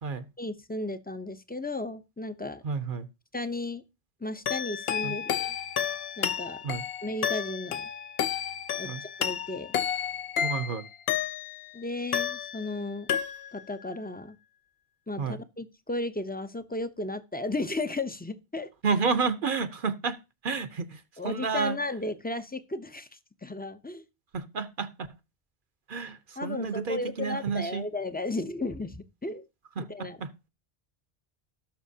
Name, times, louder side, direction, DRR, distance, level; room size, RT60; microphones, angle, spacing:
voice 1, 0.4-2.6 3.3-3.8 4.2-5.6 6.2-6.6 7.0-7.9 8.8-9.7 11.7-13.1 13.5-14.4 15.1-18.7 21.2-24.0 26.4-29.5 29.8-30.2, left 2 dB, 10° left, 0.5 m, -34 dB
voice 2, 2.6-3.1 5.0-5.1 6.6-6.8 8.8-9.0 10.4-10.8 15.2-15.4 18.8-21.8 24.3-25.1 25.9-27.8 29.8-30.3, right 5 dB, 60° right, 0.9 m, -31 dB
sound 1, 4.5-11.7 12.1-12.8 13.1-13.7, left 9 dB, 70° left, 0.9 m, -31 dB
17.5 x 6.0 x 2.7 m
omnidirectional pair, 1.0 m